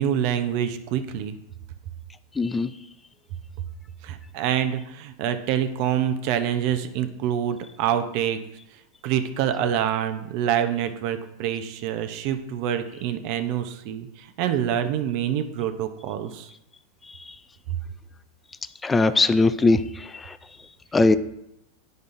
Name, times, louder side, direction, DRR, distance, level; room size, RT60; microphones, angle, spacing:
voice 1, 0.0-1.4 4.0-8.4 9.0-16.5, right 9 dB, 55° right, 8 dB, 0.7 m, -26 dB
voice 2, 2.4-2.7 18.8-19.8 20.9-21.2, left 3 dB, 15° left, 12 dB, 0.3 m, -19 dB
9.7 x 5.3 x 2.6 m, 0.82 s
supercardioid pair, 125°, 0 cm